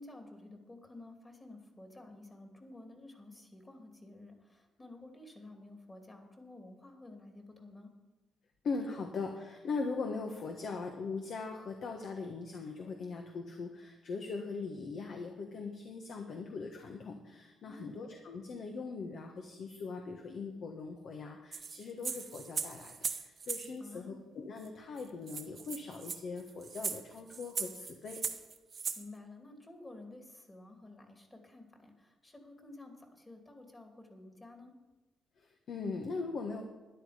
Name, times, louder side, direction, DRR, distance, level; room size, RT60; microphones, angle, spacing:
voice 1, 0.0-7.9 17.6-18.0 23.8-24.2 29.0-34.7, left 2 dB, 20° left, 4 dB, 2.6 m, -52 dB
voice 2, 8.6-28.2 35.4-36.6, left 4 dB, 60° left, 3 dB, 1.5 m, -40 dB
sound 1, 21.5-23.7 24.6-24.7 25.0-25.1 25.3-29.0, right 5 dB, 45° right, 1.1 m, -39 dB
12.5 x 10.5 x 5.1 m, 1.2 s
cardioid pair, 90°, 0 cm